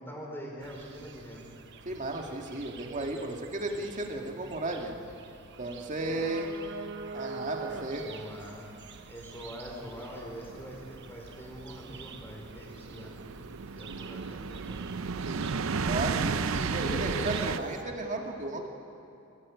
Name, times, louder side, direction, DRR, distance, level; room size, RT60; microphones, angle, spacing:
voice 1, 0.0-1.5 6.1-6.2 7.6-8.7 9.1-13.2 13.7-15.0, equal, 10° left, -2 dB, 4.6 m, -44 dB
sound 1, 0.6-17.8, right 4 dB, 55° right, 1.0 m, -46 dB
voice 2, 1.9-4.9 5.6-6.5 7.1-8.0 15.9-18.7, right 2 dB, 35° right, 2 dB, 2.2 m, -34 dB
sound 2, 10.6-17.6, right 5 dB, 75° right, 0.6 m, -33 dB
24.5 x 15.5 x 8.5 m, 2.7 s
head